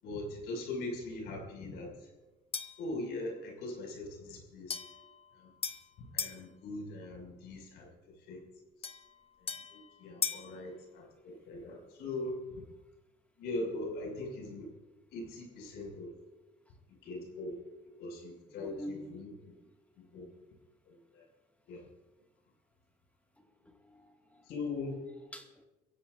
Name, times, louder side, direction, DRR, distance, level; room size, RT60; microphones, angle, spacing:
voice 1, 0.0-1.9 2.8-4.8 5.3-5.5 6.0-8.4 9.4-12.6 13.4-14.7 15.1-16.1 17.0-17.6 18.0-19.3 20.0-20.3 20.9-21.2 21.7-21.9 24.5-25.0, left 2 dB, 85° left, 0 dB, 6.1 m, -41 dB
sound 1, 2.5-2.9 4.7-6.4 8.8-10.5, left 6 dB, 35° left, 1.0 m, -39 dB
voice 2, 18.5-19.2 23.4-24.5 25.3-25.6, equal, 10° left, 2 dB, 2.0 m, -47 dB
26.5 x 16.0 x 2.6 m, 1.1 s
cardioid pair, 110°, 17 cm